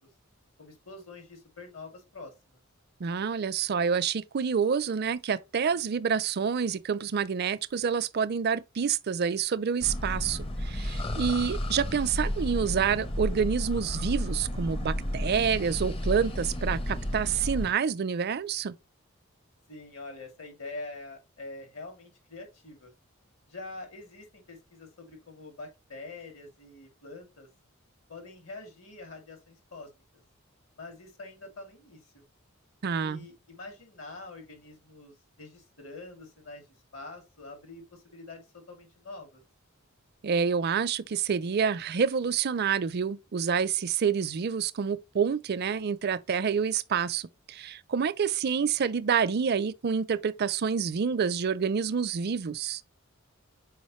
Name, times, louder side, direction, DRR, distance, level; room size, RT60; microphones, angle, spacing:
voice 1, 0.6-2.3 19.7-22.9 23.5-27.5 28.1-29.9 30.8-32.2 33.0-36.6 36.9-39.4, left 2 dB, 70° left, 2.5 m, -45 dB
voice 2, 3.0-18.7 32.8-33.3 40.2-52.8, right 6 dB, 50° right, 0.4 m, -28 dB
sound 1, 9.8-17.7, equal, 25° left, 0.6 m, -32 dB
6.4 x 4.8 x 3.0 m
head